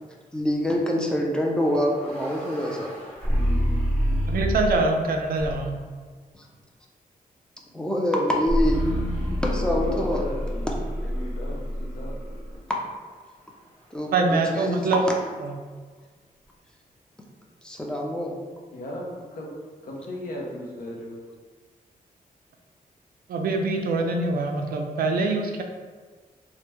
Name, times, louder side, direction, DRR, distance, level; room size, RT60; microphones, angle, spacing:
voice 1, 0.3-2.9 6.3-6.4 7.7-8.9 9.4-10.2 12.7-12.8 13.9-14.1 14.5-15.1 17.6-18.4, equal, 5° left, -1 dB, 0.5 m, -25 dB
sound 1, 1.6-4.9 5.4-5.9 8.5-12.6, equal, 45° left, 1.1 m, -27 dB
voice 2, 3.3-3.8 9.5-10.7 11.0-12.2 18.7-19.5 19.8-21.2, left 1 dB, 70° left, -2 dB, 0.7 m, -37 dB
voice 3, 4.3-5.8 14.1-15.0 15.4-15.5 23.3-25.6, right 3 dB, 85° right, 3 dB, 0.4 m, -24 dB
3.2 x 2.1 x 2.9 m, 1.5 s
wide cardioid pair, 110°, 15 cm